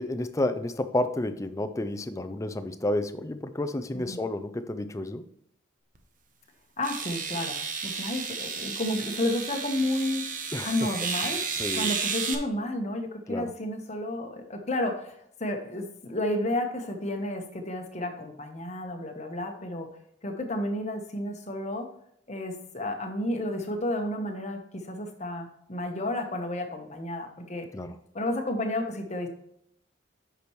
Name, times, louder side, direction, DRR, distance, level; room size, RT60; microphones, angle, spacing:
voice 1, 0.0-5.3 10.5-10.7 11.5-11.9 13.3-13.5 27.7-28.0, left 1 dB, 15° left, 10 dB, 0.4 m, -30 dB
sound 1, 6.0-6.1 6.8-12.4, right 5 dB, 40° right, 0.8 m, -32 dB
voice 2, 6.8-10.3 10.6-11.4 11.7-19.9 20.2-21.9 22.3-27.6 28.1-29.3, left 1 dB, 35° left, 4 dB, 1.0 m, -31 dB
8.4 x 6.0 x 3.1 m, 0.71 s
head